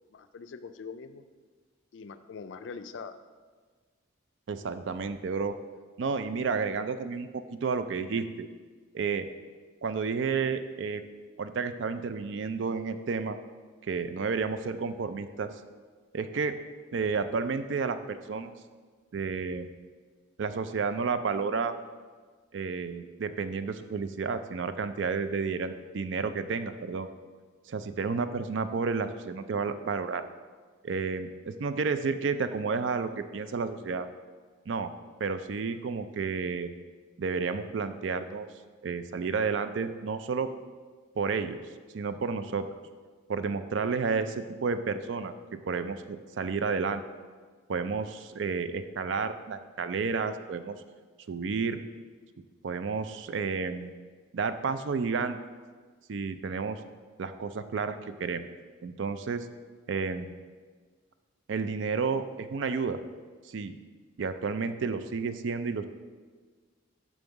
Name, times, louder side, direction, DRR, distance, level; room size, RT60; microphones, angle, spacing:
voice 1, 0.1-1.2 1.9-3.2, left 5 dB, 65° left, 11 dB, 0.4 m, -43 dB
voice 2, 4.5-5.5 6.0-8.5 8.9-9.2 9.8-11.0 11.4-13.4 13.9-15.5 16.1-16.6 16.9-18.5 19.1-19.7 20.4-21.7 22.5-27.1 27.7-30.2 30.8-34.1 34.7-34.9 35.2-36.7 37.2-38.5 38.8-40.5 41.2-41.6 41.9-42.6 43.3-45.3 45.7-47.0 47.7-50.8 51.3-51.8 52.6-53.9 54.3-55.4 56.1-56.8 57.2-58.4 58.8-59.5 59.9-60.3 61.5-63.0 63.5-63.8 64.2-65.9, right 5 dB, 65° right, 11 dB, 0.4 m, -31 dB
6.2 x 5.2 x 4.7 m, 1.5 s
head